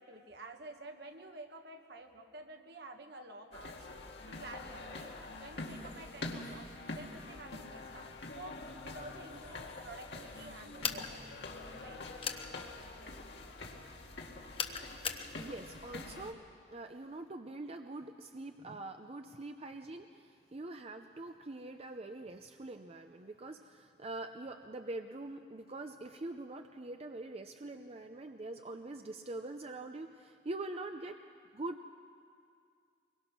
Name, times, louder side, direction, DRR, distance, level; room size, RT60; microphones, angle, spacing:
voice 1, 0.0-3.9 4.3-11.3 11.7-12.1, right 2 dB, 70° right, 4 dB, 1.6 m, -50 dB
sound 1, 3.5-16.3, left 2 dB, 75° left, 2.1 m, -46 dB
sound 2, 10.8-11.1 12.2-12.5 14.6-15.3, left 6 dB, 35° left, 1.0 m, -36 dB
voice 2, 15.4-16.4 16.7-31.2 31.5-31.9, right 2 dB, 35° right, 6 dB, 0.6 m, -44 dB
24.0 x 22.0 x 6.1 m, 2.3 s
head